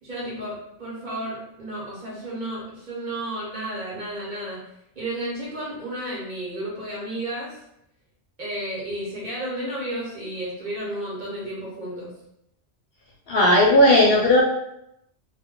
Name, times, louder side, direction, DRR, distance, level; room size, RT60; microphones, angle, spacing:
voice 1, 0.0-4.6 5.0-7.6 8.4-12.1, right 1 dB, 45° right, -6 dB, 0.9 m, -32 dB
voice 2, 13.3-14.4, left 1 dB, 65° left, -2 dB, 0.7 m, -16 dB
2.2 x 2.1 x 3.6 m, 0.80 s
omnidirectional pair, 1.2 m